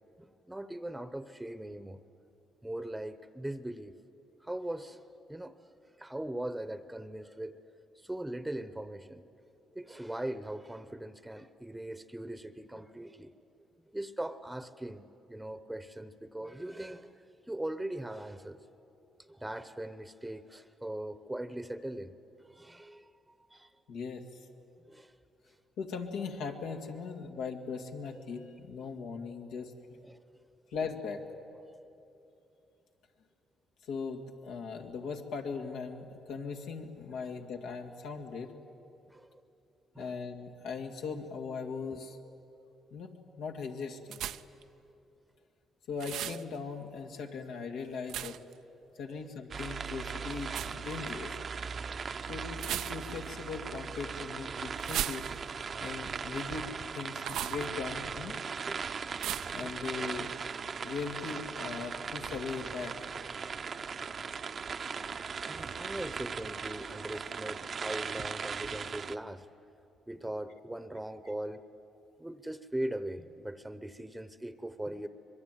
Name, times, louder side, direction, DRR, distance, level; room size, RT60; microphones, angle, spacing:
voice 1, 0.2-2.0 2.6-3.9 4.4-5.7 6.0-7.6 8.0-9.2 9.7-13.3 13.9-18.6 19.3-22.1 22.4-23.7 24.9-25.1 30.0-30.2 39.1-39.4 39.9-40.2 41.9-42.0 49.1-49.2 58.7-58.8 59.6-60.1 65.4-69.5 70.1-71.6 72.2-75.1, right 1 dB, 10° right, 12 dB, 0.9 m, -40 dB
voice 2, 23.9-24.5 25.8-30.0 30.7-31.2 33.8-38.5 40.0-42.2 42.9-44.2 45.9-48.4 49.0-51.4 52.2-55.3 55.8-56.7 56.9-58.4 59.5-60.3 60.8-63.0, left 5 dB, 85° left, 3 dB, 2.2 m, -39 dB
sound 1, 44.1-44.6 46.0-46.4 48.1-48.5 50.5-50.8 52.6-53.3 54.8-55.6 57.2-57.7 59.2-59.6, right 11 dB, 85° right, 0.6 m, -36 dB
sound 2, 49.5-69.2, right 6 dB, 45° right, 0.7 m, -39 dB
25.0 x 22.0 x 9.2 m, 2.8 s
cardioid pair, 90°, 0 cm